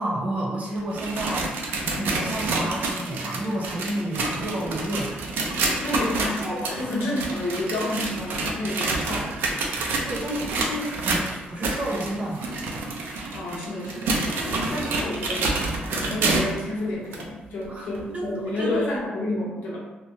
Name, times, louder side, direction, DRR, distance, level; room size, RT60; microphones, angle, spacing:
voice 1, 0.0-1.5 1.9-5.1 5.9-6.0 10.0-12.4 17.7-18.8, right 1 dB, 40° right, -3 dB, 0.8 m, -30 dB
sound 1, 0.8-16.6 17.1-17.2 17.9-18.0 18.9-19.0, right 3 dB, 90° right, 0.4 m, -28 dB
voice 2, 5.8-9.3 13.3-15.5 15.9-19.8, left 1 dB, 90° left, -5 dB, 0.9 m, -30 dB
3.0 x 2.2 x 2.7 m, 1.1 s
cardioid pair, 105°, 3 cm